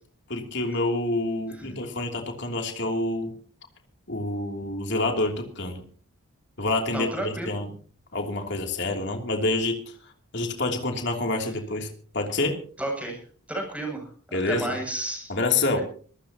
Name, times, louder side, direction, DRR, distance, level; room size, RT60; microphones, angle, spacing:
voice 1, 0.3-3.3 4.1-5.8 6.6-7.7 8.1-9.8 10.3-11.9 12.1-12.6 14.3-14.7 15.3-15.8, left 2 dB, 55° left, 3 dB, 3.0 m, -27 dB
voice 2, 6.9-7.5 12.8-13.2 13.5-15.3 15.7-15.8, right 1 dB, 5° right, 1 dB, 7.3 m, -32 dB
25.0 x 15.5 x 2.9 m, 0.43 s
head